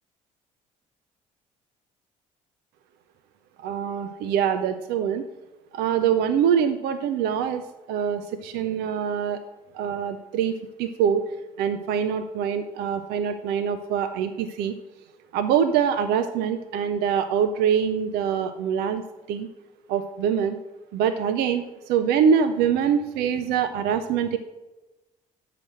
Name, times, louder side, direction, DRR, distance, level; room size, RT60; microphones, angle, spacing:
voice 1, 3.6-5.2 5.7-7.6 7.9-9.4 9.7-10.5 10.8-11.3 11.6-14.7 15.3-19.0 19.3-19.5 19.9-20.6 20.9-24.4, right 8 dB, 70° right, 10 dB, 0.6 m, -24 dB
7.5 x 5.8 x 6.5 m, 1.1 s
hypercardioid pair, 55°, 17 cm